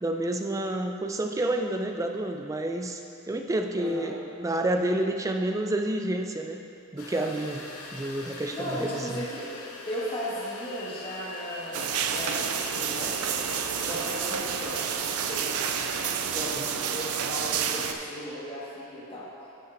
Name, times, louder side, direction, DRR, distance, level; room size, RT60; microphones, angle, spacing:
voice 1, 0.0-3.0 3.3-6.6 6.9-7.7 7.9-9.2 16.5-16.7, right 1 dB, 15° right, 4 dB, 0.3 m, -29 dB
voice 2, 3.8-4.1 8.5-9.4 9.9-13.4 13.7-14.8 15.3-15.6 16.3-19.3, equal, 25° left, -8 dB, 1.6 m, -36 dB
sound 1, 7.0-16.2, left 2 dB, 80° left, 0.9 m, -42 dB
sound 2, 11.7-17.9, right 7 dB, 85° right, 0.4 m, -29 dB
11.5 x 6.7 x 2.6 m, 2.6 s
head